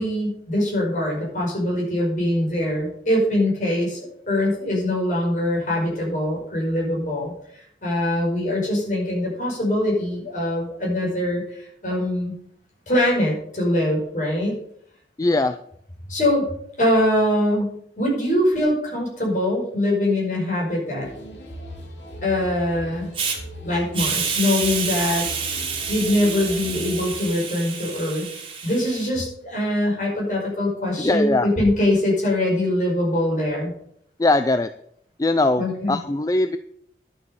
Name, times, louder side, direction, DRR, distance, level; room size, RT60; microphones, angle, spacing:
voice 1, 0.0-4.0 4.3-12.3 12.9-14.6 16.1-16.5 16.8-21.1 22.2-23.1 23.6-25.3 25.9-28.3 28.6-33.7 35.6-36.0, left 1 dB, 45° left, -3 dB, 5.5 m, -23 dB
voice 2, 15.2-15.6 31.0-31.5 34.2-34.7 35.2-36.6, left 2 dB, 20° left, 10 dB, 0.4 m, -20 dB
sound 1, 21.0-27.1, equal, 85° left, 2.1 m, -38 dB
Hiss, 23.1-23.4 23.9-29.1, right 6 dB, 30° right, 2.5 m, -28 dB
11.0 x 7.0 x 6.5 m, 0.68 s
head